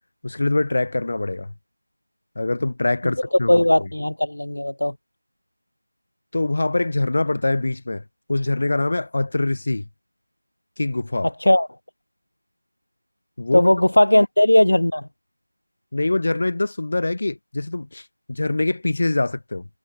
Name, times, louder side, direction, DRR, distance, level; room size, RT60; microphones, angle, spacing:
voice 1, 0.2-1.5 2.4-3.9 6.3-8.0 8.3-9.8 10.8-11.3 13.4-13.7 15.9-19.7, left 2 dB, 40° left, 2.6 m, -24 dB
voice 2, 3.5-4.9 11.2-11.7 13.5-15.1, left 1 dB, 70° left, 0.5 m, -17 dB
figure-of-eight pair, 170°, 0 cm